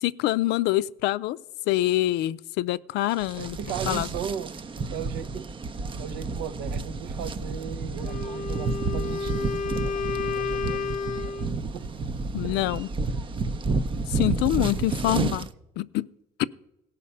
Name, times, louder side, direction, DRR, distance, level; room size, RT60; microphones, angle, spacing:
voice 1, 0.0-1.4 1.7-3.6 3.9-4.1 12.3-12.9 14.1-15.5 15.8-16.1 16.4-16.5, left 16 dB, 90° left, 0.4 m, -25 dB
sound 1, 3.1-15.5, right 3 dB, 30° right, 0.5 m, -31 dB
voice 2, 3.3-4.6 4.9-5.5 6.0-11.4 11.7-11.9 12.4-12.7 14.9-15.1, right 8 dB, 85° right, 0.6 m, -37 dB
Wind instrument woodwind instrument, 8.0-11.5, left 5 dB, 50° left, 0.6 m, -31 dB
17.0 x 5.7 x 5.5 m
cardioid pair, 110°, 17 cm